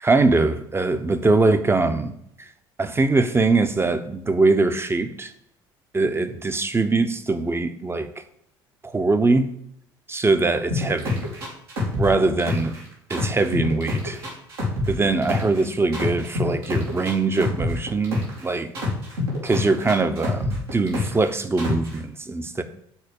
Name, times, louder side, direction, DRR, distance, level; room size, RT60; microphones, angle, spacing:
voice 1, 0.0-2.5 2.8-5.3 5.9-8.1 8.8-9.5 10.1-11.3 12.0-12.7 13.1-14.2 14.9-18.7 19.4-22.6, right 3 dB, 20° right, 0.9 m, -22 dB
sound 1, 10.7-12.8 13.1-15.6 15.9-18.4 18.7-21.3 21.6-21.9, left 2 dB, 80° right, 3.2 m, -26 dB
7.3 x 4.3 x 6.5 m
figure-of-eight pair, 60°, 12 cm